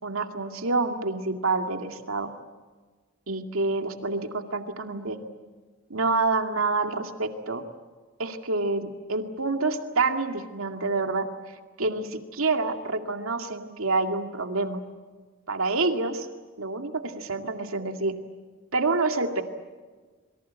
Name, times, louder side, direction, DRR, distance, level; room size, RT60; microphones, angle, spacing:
voice 1, 0.0-2.3 3.3-5.2 5.9-7.6 8.2-11.3 11.8-14.8 15.5-16.3 16.6-18.2 18.7-19.4, right 3 dB, 85° right, 5 dB, 2.3 m, -27 dB
27.5 x 23.5 x 8.3 m, 1.4 s
head